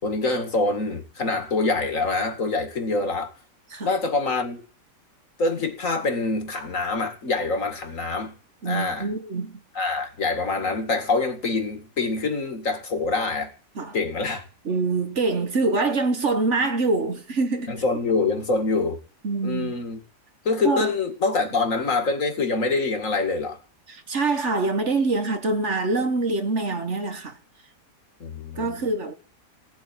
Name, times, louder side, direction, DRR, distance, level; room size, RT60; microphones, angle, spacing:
voice 1, 0.0-3.3 3.8-4.6 5.4-8.4 8.6-9.1 9.8-13.5 13.9-14.4 17.7-19.0 19.4-20.0 20.4-23.6 28.2-28.8, left 3 dB, 50° left, 2.6 m, -25 dB
voice 2, 8.6-9.6 13.7-14.0 14.6-17.7 19.2-19.8 20.6-20.9 23.9-27.4 28.5-29.1, right 3 dB, 45° right, 1.7 m, -25 dB
17.5 x 8.4 x 9.2 m
omnidirectional pair, 1.8 m